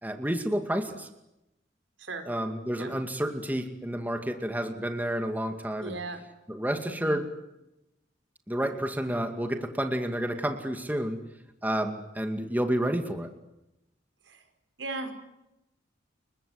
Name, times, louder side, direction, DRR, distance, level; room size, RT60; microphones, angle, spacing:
voice 1, 0.0-1.1 2.3-6.0 6.5-7.3 8.5-11.2 11.6-13.3, right 1 dB, 10° right, 6 dB, 2.3 m, -30 dB
voice 2, 5.8-6.2 6.8-7.2 14.3-14.4 14.8-15.1, right 3 dB, 80° right, 8 dB, 5.6 m, -37 dB
30.0 x 23.0 x 8.3 m, 0.88 s
head